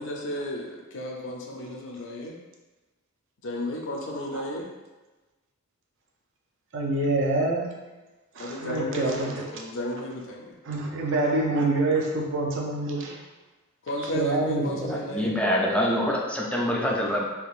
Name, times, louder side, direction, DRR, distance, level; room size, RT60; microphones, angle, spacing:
voice 1, 0.0-2.4 3.4-4.7 7.0-7.1 8.4-10.5 13.8-15.4, equal, 60° left, -1 dB, 0.5 m, -33 dB
voice 2, 6.7-7.7 8.6-9.4 10.6-13.2 14.1-14.9, right 2 dB, 60° right, 0 dB, 0.5 m, -26 dB
voice 3, 14.9-17.3, equal, 5° left, -3 dB, 0.4 m, -25 dB
3.6 x 2.8 x 2.4 m, 1.2 s
head